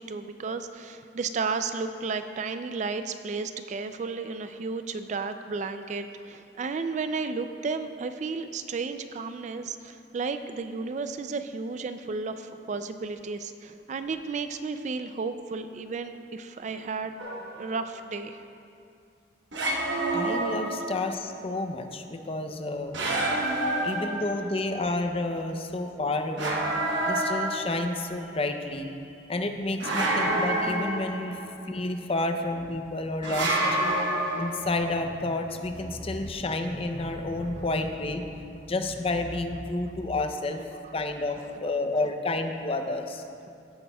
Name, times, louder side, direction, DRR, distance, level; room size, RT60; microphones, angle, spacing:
voice 1, 0.0-17.1 17.6-18.4 23.6-23.8 37.6-37.7, right 4 dB, 40° right, 9 dB, 0.3 m, -33 dB
sound 1, 17.2-17.7 19.5-21.2 22.9-24.6 26.4-28.1 29.8-31.5 33.2-34.9, right 1 dB, 70° right, 1.1 m, -28 dB
voice 2, 20.1-23.0 23.5-26.6 27.1-28.9 29.3-31.4 31.7-33.6 34.3-40.6 40.9-43.2, left 2 dB, 30° left, 6 dB, 0.5 m, -30 dB
17.0 x 8.4 x 2.3 m, 2.5 s
head